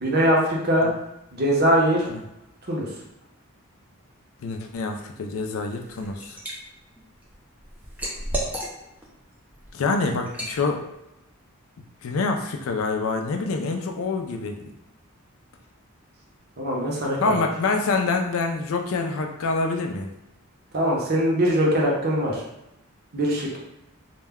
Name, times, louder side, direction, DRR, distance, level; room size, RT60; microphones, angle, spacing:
voice 1, 0.0-0.9 1.3-2.1 2.7-2.9 16.6-17.4 20.7-22.4 23.1-23.6, equal, 45° right, -3 dB, 0.7 m, -22 dB
voice 2, 4.4-6.4 9.7-10.8 12.0-14.7 17.2-20.1, left 3 dB, 70° left, 4 dB, 0.4 m, -26 dB
Liquid, 5.7-6.5 7.0-9.1 9.5-9.7 10.3-10.6, right 1 dB, 5° right, 0.4 m, -32 dB
2.2 x 2.1 x 3.5 m, 0.88 s
head